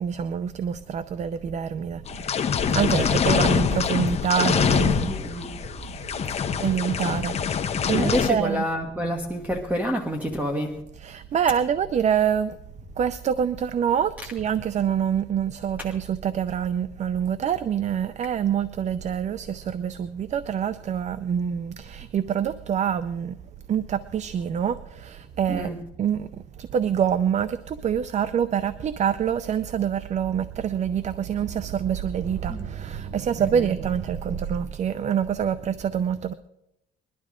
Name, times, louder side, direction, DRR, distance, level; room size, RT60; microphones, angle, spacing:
voice 1, 0.0-2.4 2.7-5.1 6.6-8.6 11.0-12.6 13.0-23.4 23.7-25.7 26.0-36.3, right 8 dB, 45° right, 0.6 m, -26 dB
sound 1, 2.1-8.3, left 7 dB, 40° left, 1.0 m, -24 dB
voice 2, 2.7-3.2 5.1-5.5 7.9-10.8 25.5-25.8 32.5-32.7 33.4-33.7, equal, 10° right, 1.5 m, -28 dB
21.5 x 12.0 x 3.7 m
cardioid pair, 110°, 17 cm